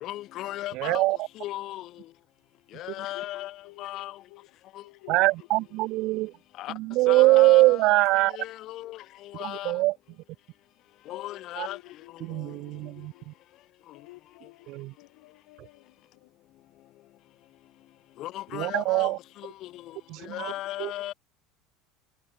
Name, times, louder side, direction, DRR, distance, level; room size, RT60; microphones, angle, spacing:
voice 1, 0.0-1.0 1.4-1.9 2.8-3.5 3.8-4.1 6.6-6.7 7.1-7.9 8.4-9.0 9.4-9.8 11.1-11.8 18.2-19.1 20.3-21.1, left 15 dB, 40° left, 2.7 m, -35 dB
voice 2, 0.7-1.3 5.1-6.3 6.7-8.4 9.4-10.0 11.6-11.7 12.2-13.3 14.7-14.9 15.6-15.7 18.5-19.2 20.1-20.5 20.8-20.9, right 20 dB, 50° right, 1.8 m, -23 dB
voice 3, 3.0-3.3 3.6-4.5 4.8-5.3 7.2-7.3 8.8-8.9 9.3-9.4 11.1-11.2 11.6-13.3 13.9-16.3 20.4-20.6, left 25 dB, 80° left, 8.0 m, -52 dB
cardioid pair, 160°, 0 cm